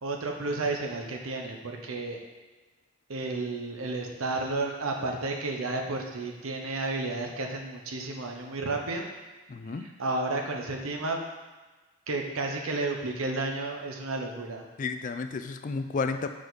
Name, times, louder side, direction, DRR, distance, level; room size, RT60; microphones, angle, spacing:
voice 1, 0.0-2.2 3.1-9.1 9.7-11.2 12.1-14.7, right 2 dB, 90° right, 2 dB, 0.9 m, -32 dB
voice 2, 9.5-9.8 14.8-16.3, left 4 dB, 40° left, 8 dB, 0.3 m, -32 dB
6.4 x 4.9 x 4.0 m, 1.3 s
head